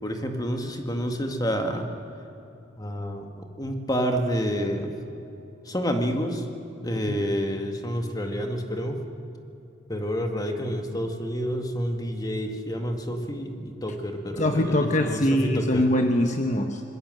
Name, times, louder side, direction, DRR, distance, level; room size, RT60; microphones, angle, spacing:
voice 1, 0.0-1.8 2.8-4.9 5.7-6.4 6.8-9.0 9.9-15.2 15.6-15.8, equal, 20° left, 4 dB, 2.0 m, -28 dB
voice 2, 14.4-16.8, left 1 dB, 40° left, 5 dB, 1.1 m, -23 dB
25.5 x 21.0 x 7.8 m, 2.8 s
head